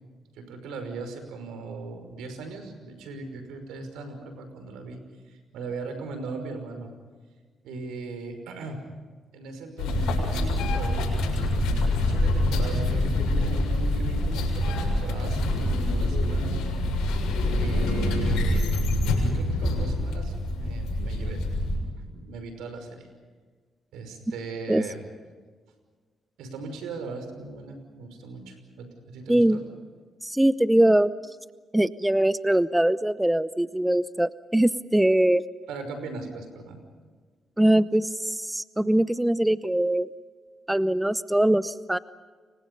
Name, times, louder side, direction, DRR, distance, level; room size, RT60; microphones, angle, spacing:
voice 1, 0.3-6.9 7.6-8.8 9.3-11.1 11.4-16.5 17.6-18.7 19.1-21.4 22.1-23.1 23.9-25.0 26.4-29.6 35.7-36.8, right 3 dB, 85° right, 7 dB, 5.6 m, -38 dB
sound 1, 9.8-21.8, left 1 dB, 85° left, 6.8 m, -25 dB
voice 2, 29.3-29.6 30.2-31.1 31.7-35.4 37.6-40.1 40.7-42.0, right 1 dB, 10° right, 15 dB, 0.8 m, -22 dB
30.0 x 24.5 x 5.5 m, 1.5 s
supercardioid pair, 60°, 0 cm